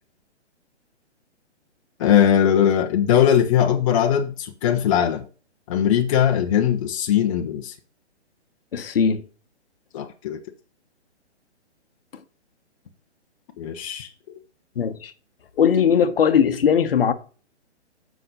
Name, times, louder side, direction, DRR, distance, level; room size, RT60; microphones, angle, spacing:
voice 1, 2.0-5.2 5.7-7.7 9.9-10.4 13.6-14.1, left 9 dB, 30° left, 0.9 m, -20 dB
voice 2, 8.7-9.2 14.8-15.1 15.6-17.1, left 7 dB, 55° left, 1.1 m, -19 dB
7.7 x 6.0 x 5.5 m
figure-of-eight pair, 140°, 35 cm